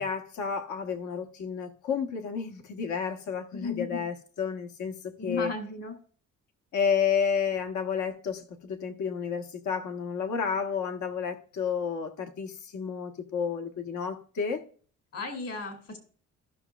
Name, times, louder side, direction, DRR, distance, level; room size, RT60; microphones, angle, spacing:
voice 1, 0.0-4.9 5.2-5.5 6.7-14.6, left 6 dB, 75° left, 1.3 m, -31 dB
voice 2, 3.5-4.0 5.2-6.0 15.1-16.0, left 4 dB, 50° left, 2.5 m, -35 dB
15.5 x 6.1 x 2.3 m
cardioid pair, 90°, 30 cm